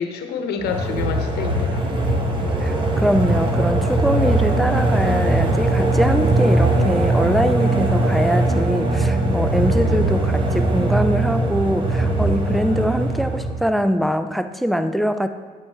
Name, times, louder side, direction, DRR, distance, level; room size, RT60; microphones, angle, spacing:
voice 1, 0.0-2.1 9.8-10.0, left 6 dB, 75° left, 5 dB, 1.0 m, -28 dB
sound 1, 0.6-13.7, right 2 dB, 30° right, 1.1 m, -20 dB
voice 2, 2.6-15.3, equal, ahead, 10 dB, 0.4 m, -22 dB
9.0 x 8.1 x 3.5 m, 1.5 s
cardioid pair, 110°, 17 cm